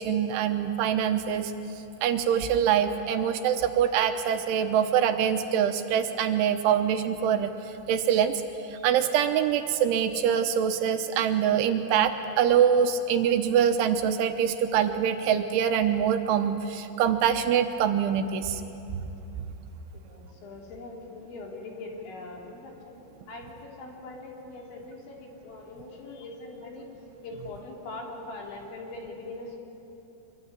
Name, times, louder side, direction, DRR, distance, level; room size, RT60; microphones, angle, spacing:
voice 1, 0.0-1.5 2.0-7.5 7.9-8.4 8.8-18.6, right 8 dB, 80° right, 7 dB, 3.2 m, -24 dB
voice 2, 20.0-22.9 23.3-26.9 27.2-29.6, left 2 dB, 65° left, 0 dB, 5.5 m, -41 dB
25.5 x 23.5 x 9.9 m, 3.0 s
omnidirectional pair, 5.9 m